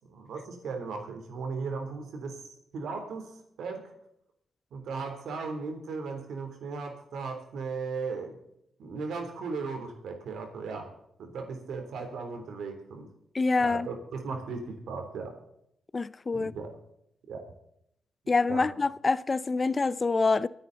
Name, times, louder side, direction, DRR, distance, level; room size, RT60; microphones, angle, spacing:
voice 1, 0.0-3.9 4.7-8.4 8.8-13.1 13.6-15.4 16.3-16.8 17.3-17.4 18.5-18.7, right 4 dB, 85° right, 3.4 m, -37 dB
voice 2, 13.3-13.9 15.9-16.5 18.3-20.5, left 3 dB, 35° left, 0.5 m, -26 dB
24.0 x 9.3 x 4.1 m
cardioid pair, 75°, 0 cm